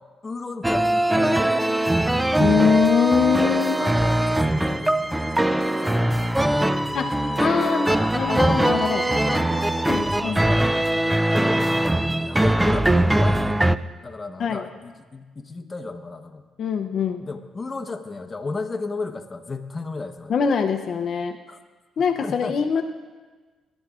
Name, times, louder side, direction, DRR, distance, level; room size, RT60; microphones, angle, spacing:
voice 1, 0.2-1.7 3.7-8.1 8.4-10.7 11.0-11.6 12.1-13.6 14.0-16.5 17.2-20.4 21.5-21.6 22.2-22.6, left 3 dB, 25° left, 6 dB, 1.0 m, -35 dB
sound 1, 0.6-13.8, right 1 dB, 10° right, 0.4 m, -21 dB
voice 2, 2.4-3.8 6.9-7.1 7.4-7.9 8.1-9.1 9.9-10.4 14.4-14.6 16.6-17.2 20.3-21.4 22.0-22.8, left 7 dB, 60° left, 5 dB, 0.6 m, -23 dB
20.5 x 11.5 x 2.4 m, 1.4 s
cardioid pair, 90°, 0 cm